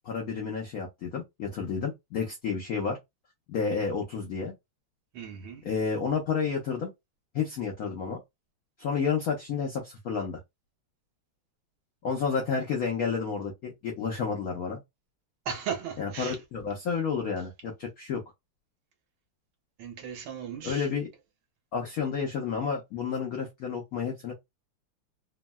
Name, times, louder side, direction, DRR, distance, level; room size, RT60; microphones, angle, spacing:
voice 1, 0.0-3.0 3.5-4.5 5.6-6.9 7.3-8.2 8.8-10.4 12.0-14.8 16.0-18.2 20.6-21.1 21.7-24.3, left 5 dB, 75° left, 0.8 m, -30 dB
voice 2, 5.1-5.7 15.4-16.4 19.8-20.9, right 7 dB, 75° right, 1.6 m, -36 dB
3.6 x 2.0 x 2.2 m
omnidirectional pair, 2.4 m